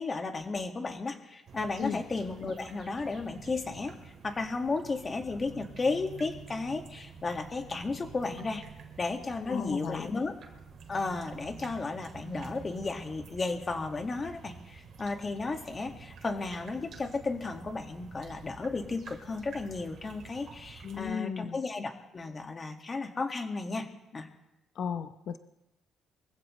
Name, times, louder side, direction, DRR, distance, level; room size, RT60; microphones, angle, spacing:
voice 1, 0.0-3.9 4.2-8.6 9.0-10.3 10.9-23.9 24.1-24.3, left 3 dB, 30° left, 4 dB, 2.0 m, -34 dB
sound 1, 1.5-21.1, right 6 dB, 65° right, 2.5 m, -49 dB
voice 2, 9.5-10.1 20.8-21.6 24.8-25.4, left 7 dB, 65° left, 9 dB, 0.9 m, -35 dB
24.0 x 15.5 x 3.3 m, 0.90 s
cardioid pair, 105°, 0 cm